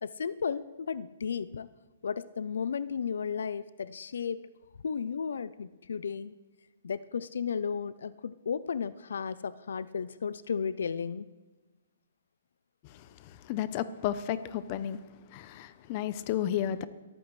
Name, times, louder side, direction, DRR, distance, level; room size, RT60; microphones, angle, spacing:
voice 1, 0.0-1.7 2.0-4.5 4.8-6.3 6.8-11.3, left 6 dB, 80° left, 17 dB, 0.5 m, -34 dB
voice 2, 12.8-15.0 15.3-16.9, left 11 dB, 30° left, 14 dB, 0.7 m, -33 dB
22.5 x 14.0 x 3.2 m, 1.2 s
hypercardioid pair, 160°, 0 cm